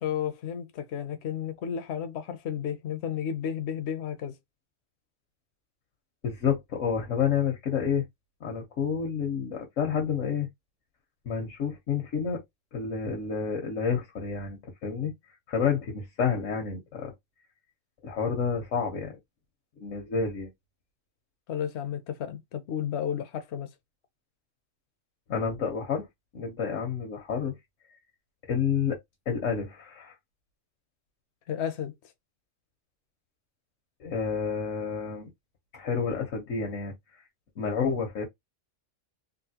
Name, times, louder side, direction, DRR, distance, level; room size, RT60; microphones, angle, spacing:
voice 1, 0.0-4.4 21.5-23.7 31.5-31.9, left 9 dB, 65° left, 0.9 m, -32 dB
voice 2, 6.2-8.0 8.4-10.5 11.2-12.4 12.7-15.1 15.5-17.1 18.0-19.2 19.8-20.5 25.3-26.1 26.3-27.5 28.5-29.0 29.3-30.1 34.0-35.3 35.7-36.9 37.6-38.3, left 6 dB, 85° left, 1.4 m, -29 dB
3.7 x 2.7 x 2.8 m
omnidirectional pair, 1.3 m